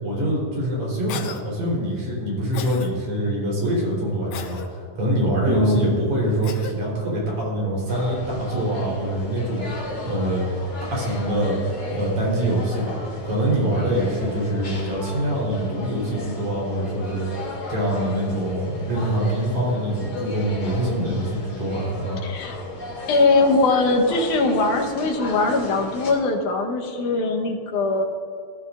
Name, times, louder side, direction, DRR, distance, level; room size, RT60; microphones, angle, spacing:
voice 1, 0.0-10.5 10.9-13.0 13.2-22.2, right 1 dB, 75° right, -4 dB, 5.3 m, -24 dB
Cough, 1.1-1.4 2.5-2.9 4.3-4.7 6.4-6.7, left 7 dB, 70° left, 1.6 m, -34 dB
voice 2, 5.5-6.0 22.2-22.6 23.1-28.1, left 3 dB, 90° left, 1 dB, 2.7 m, -21 dB
sound 1, 7.9-26.1, left 3 dB, 35° left, 2.2 m, -35 dB
18.5 x 13.0 x 2.5 m, 2.3 s
omnidirectional pair, 3.4 m